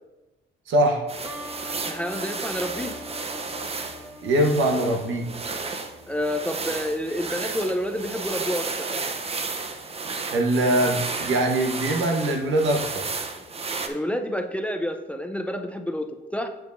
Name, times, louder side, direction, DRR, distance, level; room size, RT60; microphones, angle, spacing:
voice 1, 0.7-1.0 4.2-5.3 10.3-12.8, right 1 dB, 75° right, 3 dB, 1.1 m, -22 dB
sound 1, 1.1-13.9, right 4 dB, 30° right, 0.7 m, -33 dB
sound 2, 1.2-6.7, left 1 dB, 10° right, 1.2 m, -43 dB
voice 2, 1.9-3.0 6.1-8.9 13.9-16.5, equal, 5° left, 6 dB, 0.5 m, -29 dB
7.7 x 7.2 x 2.6 m, 1.1 s
cardioid pair, 90°, 20 cm